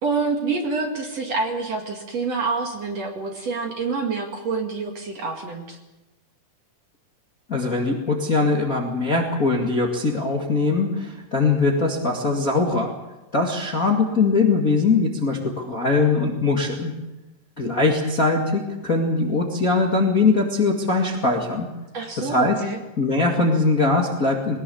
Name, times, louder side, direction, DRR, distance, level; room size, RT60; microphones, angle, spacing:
voice 1, 0.0-5.8 21.9-22.8, right 4 dB, 45° right, 2 dB, 2.7 m, -27 dB
voice 2, 7.5-12.9 13.3-16.9 17.6-21.7 22.2-22.6 23.0-24.6, left 3 dB, 30° left, 0 dB, 1.7 m, -21 dB
21.5 x 20.0 x 7.1 m, 1.0 s
omnidirectional pair, 4.6 m